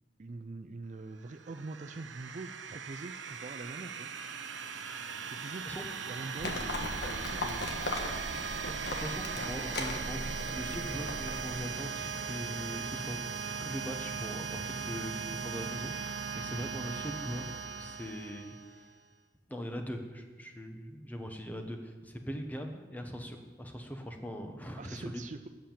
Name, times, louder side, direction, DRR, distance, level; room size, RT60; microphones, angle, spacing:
voice 1, 0.2-4.1 5.3-5.7 6.1-7.8 24.8-25.5, right 3 dB, 40° right, 7 dB, 0.4 m, -44 dB
sound 1, 1.3-18.9, right 5 dB, 85° right, 0.6 m, -39 dB
Livestock farm animals working animals, 6.4-11.6, left 2 dB, 60° left, 1.4 m, -38 dB
voice 2, 8.4-13.2 13.6-18.8 19.5-25.2, equal, 10° left, 4 dB, 0.9 m, -41 dB
8.5 x 7.4 x 8.6 m, 1.4 s
head